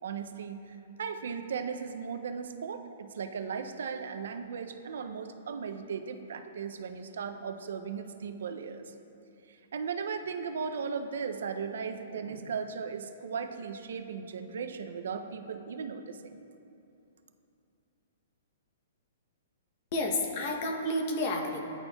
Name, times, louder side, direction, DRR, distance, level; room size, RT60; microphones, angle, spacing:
voice 1, 0.0-8.8 9.5-16.4, right 6 dB, 75° right, 7 dB, 0.4 m, -37 dB
voice 2, 19.9-21.6, left 1 dB, 35° left, 2 dB, 0.7 m, -30 dB
10.0 x 4.3 x 2.2 m, 2.7 s
hypercardioid pair, 165°, 0 cm